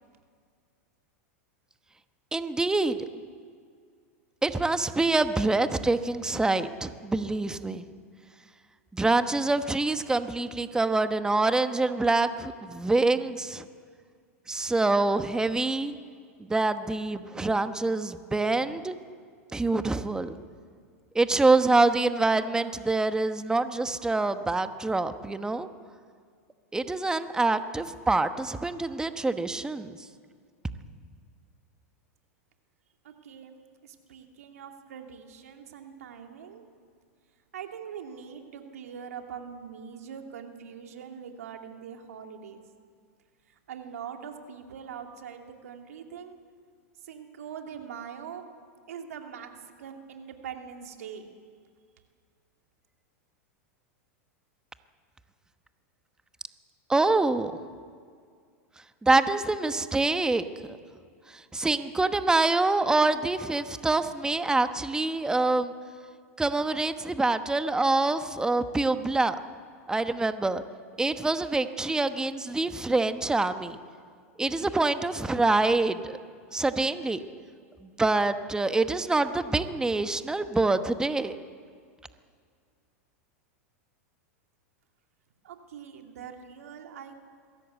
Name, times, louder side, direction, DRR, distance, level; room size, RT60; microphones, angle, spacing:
voice 1, 2.3-3.0 4.4-7.8 8.9-13.7 14.5-15.9 16.5-19.0 19.5-20.4 21.1-25.7 26.7-30.0 56.9-57.5 59.0-60.4 61.3-65.7 66.4-69.4 69.9-70.6 71.0-73.8 74.4-76.2 76.5-77.2 78.0-81.4, right 3 dB, 10° right, 10 dB, 1.1 m, -25 dB
voice 2, 33.0-33.6 33.8-36.7 37.5-42.6 43.5-46.4 47.0-48.6 48.9-51.3 85.4-87.2, right 7 dB, 80° right, 4 dB, 2.6 m, -43 dB
22.0 x 16.5 x 8.2 m, 2.1 s
hypercardioid pair, 105°, 8 cm